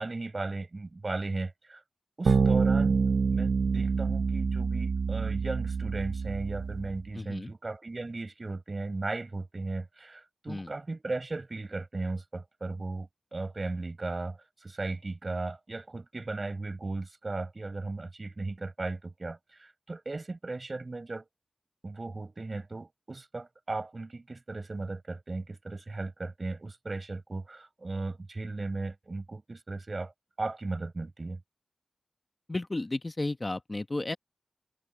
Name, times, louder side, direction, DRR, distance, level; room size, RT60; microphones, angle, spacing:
voice 1, 0.0-1.8 2.2-3.0 3.3-21.3 21.8-30.1 30.4-31.4, right 3 dB, 40° right, 5.0 m, -36 dB
sound 1, 2.3-7.0, right 5 dB, 85° right, 0.6 m, -27 dB
voice 2, 7.1-7.5 10.5-10.7 32.5-34.2, left 2 dB, 30° left, 1.1 m, -33 dB
wide cardioid pair, 85°, 0 cm